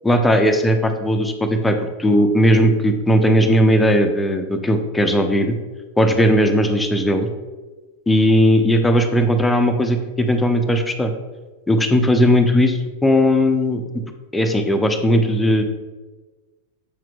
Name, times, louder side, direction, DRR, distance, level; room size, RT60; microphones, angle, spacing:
voice 1, 0.0-5.5 6.0-7.3 8.1-11.1 11.7-12.8 13.0-13.8 14.3-15.6, equal, 10° left, 6 dB, 0.6 m, -17 dB
7.1 x 5.8 x 2.3 m, 1.3 s
figure-of-eight pair, 90°, 0 cm